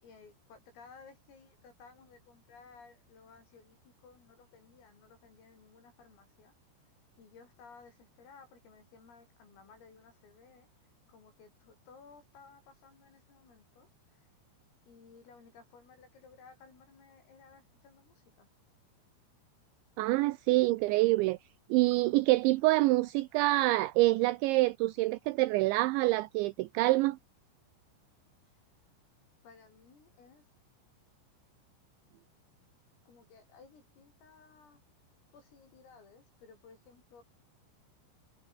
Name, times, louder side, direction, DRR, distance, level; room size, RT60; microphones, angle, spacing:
voice 1, 0.0-6.6 7.2-10.7 11.1-13.9 14.1-14.3 14.9-18.5 29.4-30.4 33.1-34.8 35.3-37.2, left 5 dB, 75° left, 10.5 m, -57 dB
voice 2, 20.0-21.4 21.7-27.2, right 20 dB, 85° right, 2.7 m, -26 dB
omnidirectional pair, 6.0 m